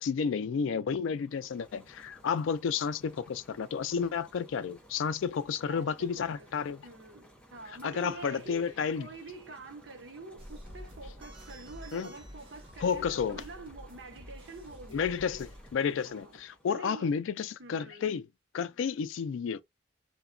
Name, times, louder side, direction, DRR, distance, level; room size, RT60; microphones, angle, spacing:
voice 1, 0.0-6.8 7.8-9.1 11.9-12.1 12.8-13.4 14.9-18.2 18.5-19.6, left 6 dB, 80° left, 0.3 m, -31 dB
sound 1, 1.0-16.8, equal, 5° left, 0.6 m, -58 dB
voice 2, 5.7-6.5 6.8-15.1 16.1-16.4 16.7-17.1 17.6-18.1, right 3 dB, 65° right, 0.8 m, -47 dB
sound 2, 10.4-15.7, equal, 25° right, 0.8 m, -49 dB
2.8 x 2.2 x 2.4 m
head